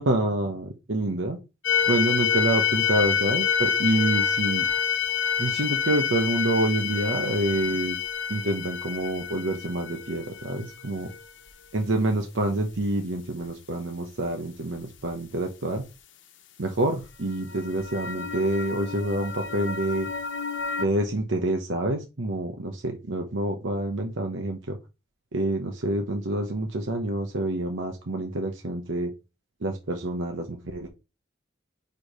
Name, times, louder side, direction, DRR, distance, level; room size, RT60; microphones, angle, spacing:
voice 1, 0.0-1.4 1.9-4.6 5.4-8.0 8.3-11.1 11.7-15.8 16.6-20.1 20.8-24.8 25.3-29.1 29.6-30.4 30.7-30.9, right 1 dB, 85° right, 3 dB, 1.0 m, -27 dB
sound 1, 1.6-11.2 17.3-20.8, left 7 dB, 80° left, 1.0 m, -28 dB
4.9 x 4.8 x 4.8 m, 0.27 s
head